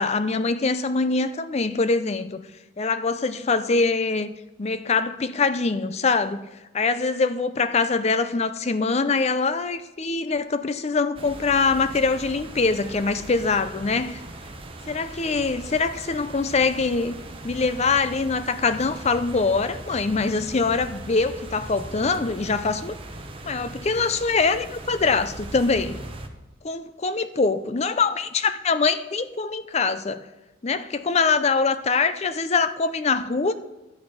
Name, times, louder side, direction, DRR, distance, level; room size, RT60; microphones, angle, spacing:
voice 1, 0.0-2.4 2.8-4.3 4.6-6.5 6.7-14.2 14.9-17.2 17.4-22.9 23.4-26.0 26.6-30.2 30.6-33.5, left 4 dB, 35° left, 0.5 m, -23 dB
sound 1, 11.2-26.3, right 2 dB, 30° right, 1.0 m, -39 dB
11.5 x 8.3 x 5.0 m
head